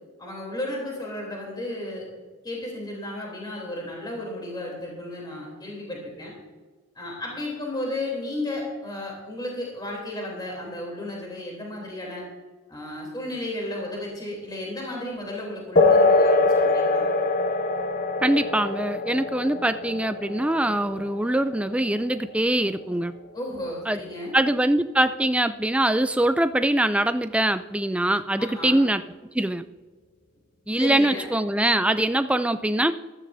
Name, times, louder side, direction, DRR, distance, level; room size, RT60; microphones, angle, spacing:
voice 1, 0.2-2.1 2.4-6.3 6.9-12.2 12.7-17.1 23.3-24.4 28.4-28.8 30.8-31.3, left 1 dB, 20° left, -1 dB, 3.2 m, -33 dB
sound 1, 15.8-23.8, left 3 dB, 40° left, 0.8 m, -24 dB
voice 2, 18.2-23.1 23.9-24.0 24.3-29.0 29.3-29.6 30.7-32.9, right 1 dB, 5° right, 11 dB, 0.3 m, -23 dB
15.5 x 13.5 x 2.7 m, 1.3 s
head